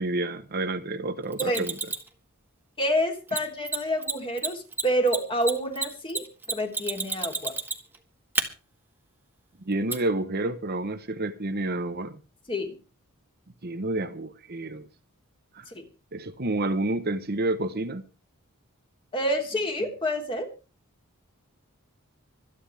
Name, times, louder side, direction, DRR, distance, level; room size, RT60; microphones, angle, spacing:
voice 1, 0.0-1.7 9.7-12.2 13.6-14.8 15.5-15.6 16.1-18.0, right 2 dB, 45° right, 1.1 m, -29 dB
Mechanisms, 1.3-2.1 3.3-3.4 3.7-4.1 4.4-8.0 8.4-8.5 9.9-10.0, right 3 dB, 10° right, 1.8 m, -29 dB
voice 2, 2.8-7.5 12.5-12.8 15.8-15.9 19.1-20.5, equal, 25° left, 3.5 m, -28 dB
26.0 x 9.7 x 3.5 m
head